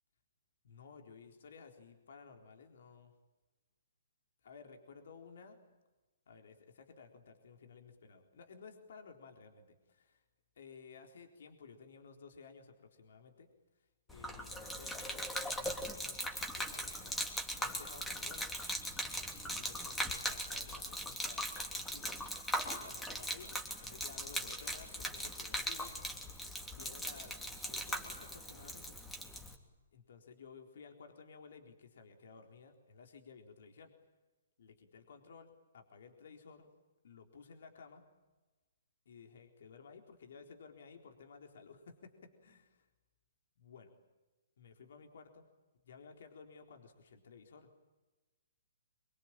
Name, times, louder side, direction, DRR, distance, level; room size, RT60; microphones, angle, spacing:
voice 1, 0.6-3.1 4.4-5.6 6.3-10.2 10.6-13.5 14.1-17.3 17.6-18.5 19.3-22.3 22.6-23.5 23.8-25.9 26.8-28.9 29.9-33.9 34.6-36.7 37.0-38.0 39.1-42.9 43.6-43.9 44.6-45.5 45.9-47.7, left 5 dB, 65° left, 4 dB, 4.0 m, -55 dB
Gurgling / Liquid, 14.1-29.5, equal, 5° left, 3.1 m, -40 dB
25.0 x 23.0 x 8.9 m, 1.2 s
hypercardioid pair, 135°, 0 cm